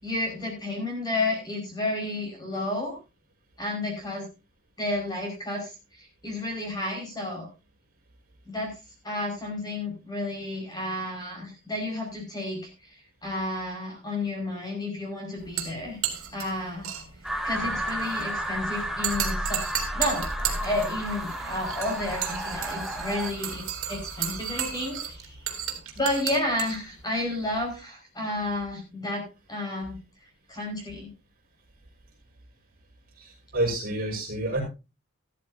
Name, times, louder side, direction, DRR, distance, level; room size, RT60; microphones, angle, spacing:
voice 1, 0.0-3.0 3.6-4.3 4.8-7.5 8.4-8.7 9.0-12.7 13.2-16.0 16.3-16.9 17.4-19.6 19.9-25.4 25.9-30.0 30.5-31.1, left 1 dB, 20° left, 1 dB, 5.1 m, -31 dB
sound 1, 15.4-27.8, right 8 dB, 70° right, 3.4 m, -35 dB
sound 2, 17.2-23.3, right 1 dB, ahead, 1.1 m, -32 dB
voice 2, 33.2-34.6, right 1 dB, 40° right, -1 dB, 5.7 m, -29 dB
14.0 x 13.5 x 2.7 m, 0.29 s
head